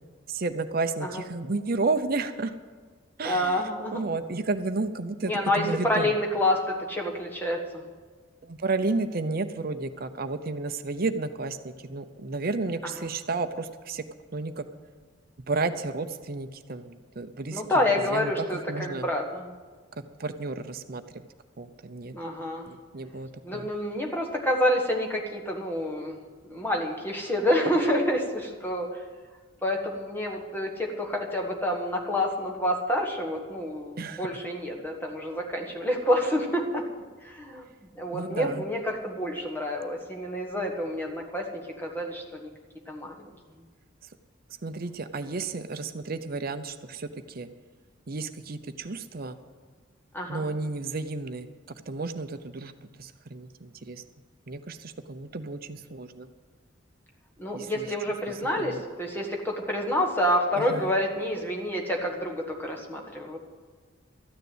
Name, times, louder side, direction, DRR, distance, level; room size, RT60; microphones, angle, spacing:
voice 1, 0.3-2.6 3.2-3.6 3.9-6.1 8.4-14.0 14.3-14.7 15.5-17.6 18.1-19.1 20.2-21.3 21.6-22.2 22.7-23.7 34.0-34.3 38.1-38.6 44.6-47.5 48.1-49.4 50.3-51.5 51.9-54.0 54.5-56.3 57.5-57.9 58.6-58.8 60.5-60.9, right 3 dB, 50° right, 10 dB, 0.7 m, -32 dB
voice 2, 3.2-4.1 5.2-7.9 12.8-13.1 17.5-19.5 22.1-22.7 23.4-29.0 29.6-36.8 37.2-37.6 37.9-42.5 42.9-43.3 50.1-50.4 57.4-63.4, left 1 dB, 10° left, 0 dB, 1.5 m, -28 dB
13.0 x 9.7 x 7.9 m, 1.5 s
head